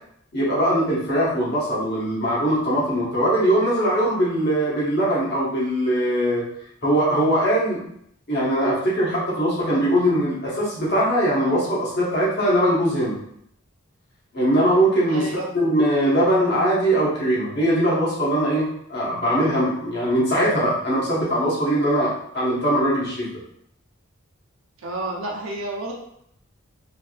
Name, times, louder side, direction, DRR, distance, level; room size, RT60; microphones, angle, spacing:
voice 1, 0.3-6.4 6.8-7.8 8.3-13.2 14.3-23.3, equal, 50° left, -6 dB, 1.1 m, -21 dB
voice 2, 15.1-15.5 24.8-25.9, right 1 dB, 75° right, -1 dB, 0.7 m, -30 dB
3.4 x 2.6 x 2.4 m, 0.71 s
head